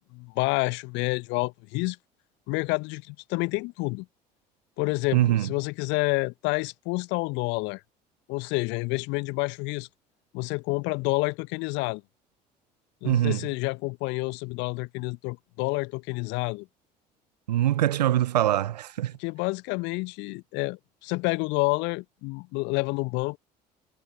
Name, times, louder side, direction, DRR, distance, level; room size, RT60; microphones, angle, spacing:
voice 1, 0.1-2.0 2.5-4.0 4.8-7.8 8.3-9.9 10.3-12.0 13.0-16.7 19.2-23.4, left 26 dB, 60° left, 1.3 m, -29 dB
voice 2, 5.1-5.5 13.0-13.5 17.5-19.1, right 12 dB, 75° right, 0.9 m, -23 dB
figure-of-eight pair, 55°, 21 cm